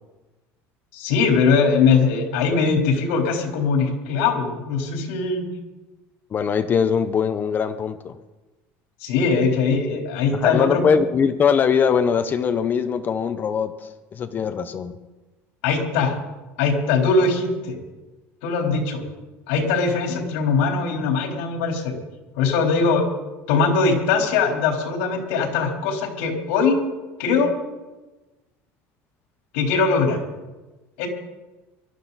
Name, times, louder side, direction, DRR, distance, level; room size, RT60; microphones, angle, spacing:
voice 1, 0.9-5.4 9.0-11.0 15.6-16.2 16.6-17.8 18.4-19.0 19.5-22.0 22.4-23.1 23.5-26.8 27.2-27.5 29.5-30.2 31.0-31.1, left 4 dB, 90° left, 1 dB, 3.8 m, -21 dB
voice 2, 6.3-8.1 10.4-14.9, left 6 dB, 30° left, 11 dB, 0.7 m, -21 dB
23.5 x 13.0 x 4.1 m, 1.1 s
cardioid pair, 145°, 6 cm